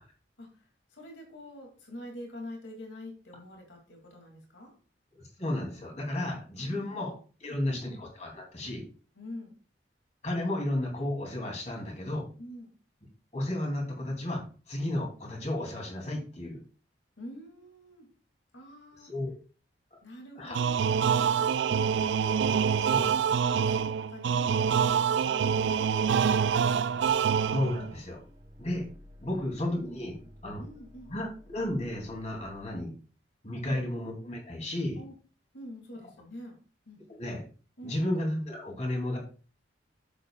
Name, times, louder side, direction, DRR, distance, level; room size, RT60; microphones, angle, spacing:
voice 1, 0.4-4.7 6.6-7.1 7.4-7.8 9.2-9.6 12.4-12.7 17.2-18.1 18.5-19.1 20.0-27.2 30.2-31.1 33.6-33.8 35.0-35.1 35.5-36.5 36.9-37.0 37.8-38.0, left 1 dB, 90° left, 2 dB, 2.5 m, -46 dB
voice 2, 5.1-7.1 7.4-8.8 10.2-12.3 13.3-14.4 14.7-16.6 19.1-19.3 19.9-20.0 20.4-20.6 22.9-23.1 27.5-28.2 28.6-28.8 29.2-30.1 30.4-30.6 31.1-32.9 33.4-35.0 37.1-37.4 37.8-39.2, left 1 dB, 40° left, 0 dB, 2.8 m, -33 dB
sound 1, 20.5-27.9, right 7 dB, 75° right, 0.3 m, -26 dB
sound 2, 25.8-32.7, left 1 dB, 30° right, 1.0 m, -54 dB
10.0 x 8.2 x 2.4 m, 0.37 s
head